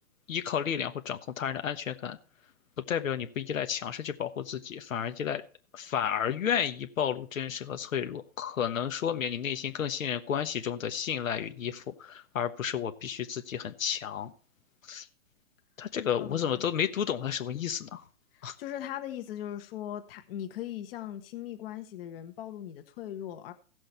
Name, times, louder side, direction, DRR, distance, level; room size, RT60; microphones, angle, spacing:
voice 1, 0.3-2.2 2.9-5.4 5.7-14.3 14.9-15.1 15.8-18.0 18.4-18.5, left 8 dB, 80° left, 1.3 m, -32 dB
voice 2, 16.2-16.7 18.3-23.5, left 11 dB, 45° left, 1.5 m, -39 dB
16.5 x 6.4 x 4.5 m
hypercardioid pair, 140°, 39 cm